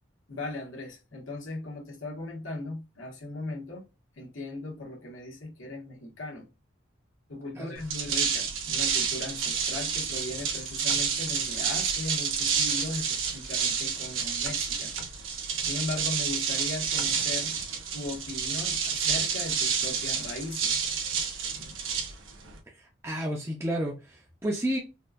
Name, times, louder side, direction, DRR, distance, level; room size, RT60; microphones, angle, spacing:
voice 1, 0.3-3.9 4.2-6.5 7.3-15.0 15.6-17.5 17.9-20.8, left 2 dB, 90° left, 1.5 m, -38 dB
sound 1, 7.8-22.6, right 6 dB, 90° right, 1.1 m, -29 dB
voice 2, 23.0-24.8, equal, 15° right, 0.5 m, -30 dB
4.3 x 2.4 x 2.4 m
head